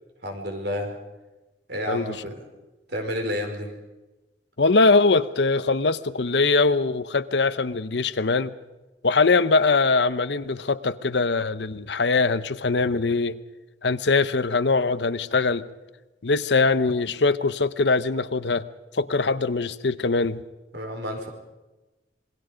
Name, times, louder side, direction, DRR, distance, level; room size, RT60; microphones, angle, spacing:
voice 1, 0.2-1.0 1.7-2.5 2.9-3.7 20.7-21.3, equal, 70° right, 4.9 m, -30 dB
voice 2, 4.6-8.5 9.0-13.4 13.8-15.7 16.2-18.6 18.9-20.4, left 3 dB, 75° left, 0.9 m, -22 dB
27.0 x 21.5 x 5.2 m
head